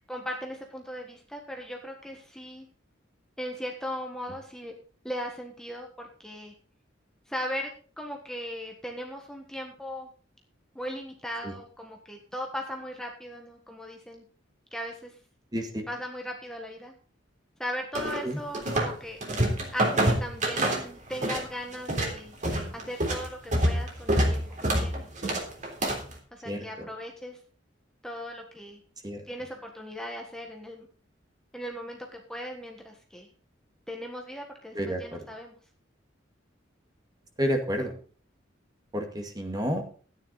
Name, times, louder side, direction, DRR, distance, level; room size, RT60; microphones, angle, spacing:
voice 1, 0.1-2.7 3.4-4.7 5.0-6.5 7.3-7.7 8.0-10.1 10.7-14.2 14.7-15.2 15.9-16.9 17.6-19.2 19.7-22.3 22.7-25.1 26.3-27.4 28.0-28.8 29.3-30.9 31.5-33.3 33.9-35.6, equal, 5° left, 1 dB, 1.6 m, -38 dB
voice 2, 15.5-15.9 18.2-18.4 26.5-26.6 29.0-29.2 34.8-35.0 37.4-37.9 38.9-39.8, equal, 20° right, 5 dB, 2.1 m, -29 dB
sound 1, 17.9-18.9 19.2-21.4 21.7-26.1, right 1 dB, 40° right, 3.4 m, -26 dB
13.0 x 9.8 x 4.1 m, 0.40 s
head